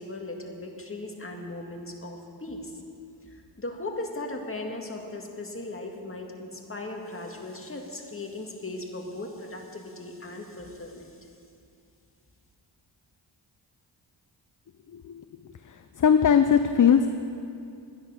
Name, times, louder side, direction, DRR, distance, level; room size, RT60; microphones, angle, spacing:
voice 1, 0.0-2.8 3.2-11.2, left 2 dB, 30° left, 1 dB, 2.0 m, -38 dB
voice 2, 14.9-15.2 15.6-17.1, left 7 dB, 45° left, 9 dB, 0.6 m, -20 dB
12.0 x 10.0 x 6.4 m, 2.5 s
cardioid pair, 45°, 45 cm